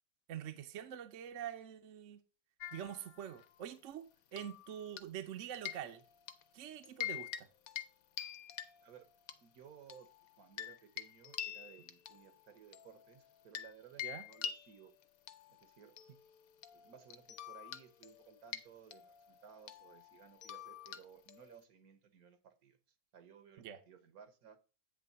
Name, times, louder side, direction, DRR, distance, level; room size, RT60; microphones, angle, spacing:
voice 1, 0.3-2.2 2.7-6.0 6.5-7.5 14.0-14.2 23.6-23.8, right 10 dB, 60° right, 1.0 m, -45 dB
sound 1, 2.6-3.7 4.3-5.3 5.5-6.4 6.8-7.4 7.7-7.9 8.2-9.4 9.9-13.7 14.0-21.6, left 10 dB, 70° left, 1.1 m, -46 dB
voice 2, 9.4-10.1 10.4-14.9 15.5-15.9 16.7-22.8 23.1-24.6, right 8 dB, 75° right, 1.5 m, -59 dB
9.0 x 3.4 x 6.7 m
omnidirectional pair, 1.6 m